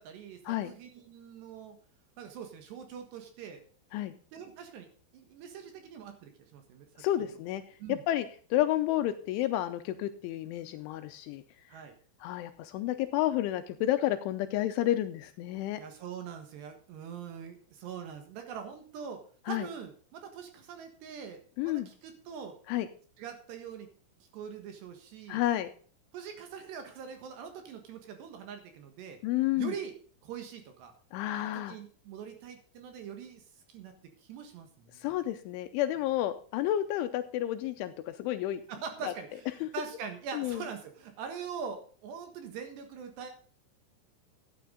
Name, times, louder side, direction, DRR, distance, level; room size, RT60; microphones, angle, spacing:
voice 1, 0.0-1.8 2.2-3.6 4.3-4.9 5.1-7.0 7.8-8.0 11.7-11.9 15.8-22.6 23.2-23.9 24.3-25.4 26.1-29.2 29.6-29.9 30.2-30.9 31.2-33.4 33.7-33.9 34.2-35.1 38.7-43.3, right 7 dB, 65° right, 6 dB, 3.2 m, -43 dB
voice 2, 7.0-7.6 7.9-11.4 11.7-11.8 12.2-15.8 19.5-19.7 21.6-21.9 22.7-22.9 25.3-25.7 29.2-29.8 31.1-31.8 34.9-38.6 39.0-39.1 39.6-39.7 40.3-40.6, left 13 dB, 80° left, 10 dB, 2.9 m, -31 dB
13.5 x 9.4 x 3.8 m, 0.42 s
omnidirectional pair, 5.9 m